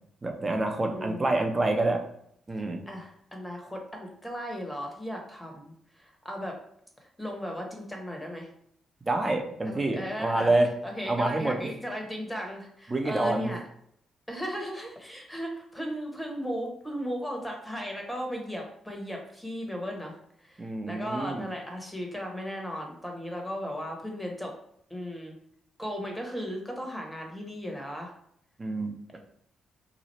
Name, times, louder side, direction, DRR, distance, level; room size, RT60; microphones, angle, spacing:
voice 1, 0.2-2.0 2.5-2.8 9.0-10.7 11.1-11.6 12.9-13.5 20.6-21.5 28.6-29.2, right 2 dB, 30° right, 4 dB, 0.8 m, -27 dB
voice 2, 0.9-1.5 2.9-6.6 7.2-8.5 9.6-10.5 10.8-13.6 14.3-24.5 24.9-25.3 25.8-28.1, equal, 10° left, 1 dB, 1.3 m, -36 dB
3.0 x 2.3 x 4.2 m, 0.70 s
supercardioid pair, 55°, 0 cm